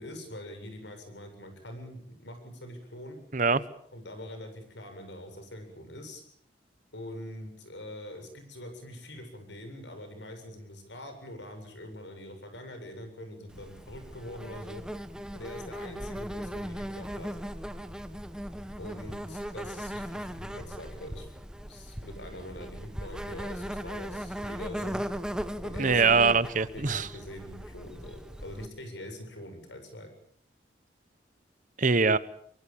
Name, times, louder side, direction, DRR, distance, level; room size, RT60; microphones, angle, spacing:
voice 1, 0.0-3.2 3.9-6.2 6.9-14.8 15.3-17.3 18.8-21.3 21.7-25.0 25.6-26.2 26.7-30.1, left 1 dB, 85° left, 7 dB, 7.6 m, -43 dB
Insect, 13.5-28.7, equal, 5° right, 1.1 m, -38 dB
voice 2, 25.8-27.1 31.8-32.2, right 4 dB, 45° right, 16 dB, 1.1 m, -23 dB
24.0 x 23.5 x 7.3 m, 0.63 s
head